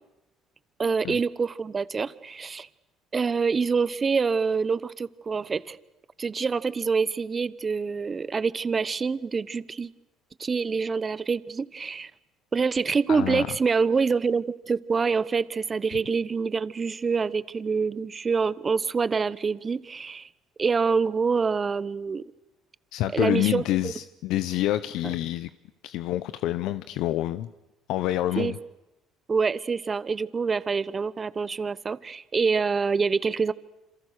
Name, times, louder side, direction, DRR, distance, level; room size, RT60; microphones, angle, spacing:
voice 1, 0.8-2.7 3.1-5.8 6.2-9.9 10.4-12.1 12.5-20.3 20.6-22.2 23.1-23.9 28.4-28.5 29.3-33.5, right 5 dB, 30° right, 18 dB, 0.9 m, -26 dB
voice 2, 13.1-13.5 22.9-25.5 25.8-27.5 27.9-28.6, left 14 dB, 75° left, 13 dB, 0.8 m, -27 dB
28.0 x 27.0 x 6.6 m, 0.98 s
cardioid pair, 105°, 0 cm